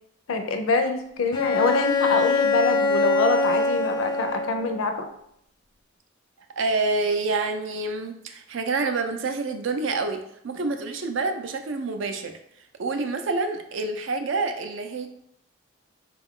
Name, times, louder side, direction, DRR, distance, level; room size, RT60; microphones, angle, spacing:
voice 1, 0.3-5.1, left 3 dB, 80° left, 7 dB, 0.5 m, -25 dB
Bowed string instrument, 1.3-4.8, left 3 dB, 20° left, 0.3 m, -23 dB
voice 2, 6.6-12.3 12.8-15.1, right 3 dB, 60° right, 6 dB, 0.4 m, -27 dB
3.8 x 2.3 x 3.6 m, 0.73 s
head